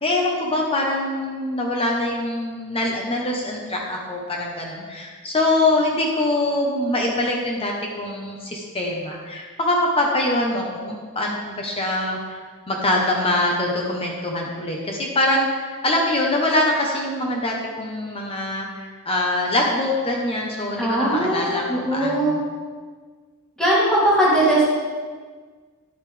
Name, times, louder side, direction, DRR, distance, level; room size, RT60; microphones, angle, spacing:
voice 1, 0.0-12.4 12.7-22.4, left 1 dB, 25° left, -1 dB, 1.0 m, -24 dB
voice 2, 20.8-22.4 23.6-24.7, right 1 dB, 5° left, -8 dB, 2.8 m, -19 dB
10.5 x 8.1 x 3.4 m, 1.5 s
head